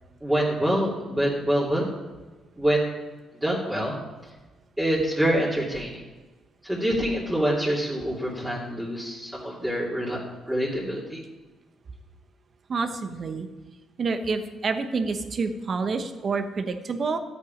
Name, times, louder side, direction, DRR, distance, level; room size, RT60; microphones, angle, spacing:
voice 1, 0.2-1.9 2.6-3.0 3.4-4.0 4.8-5.9 6.6-10.2 10.5-11.2, right 1 dB, 10° right, -7 dB, 2.7 m, -25 dB
voice 2, 12.7-13.5 14.0-17.2, right 4 dB, 45° right, 8 dB, 1.1 m, -28 dB
13.0 x 8.5 x 5.2 m, 1.2 s
cardioid pair, 90°, 0 cm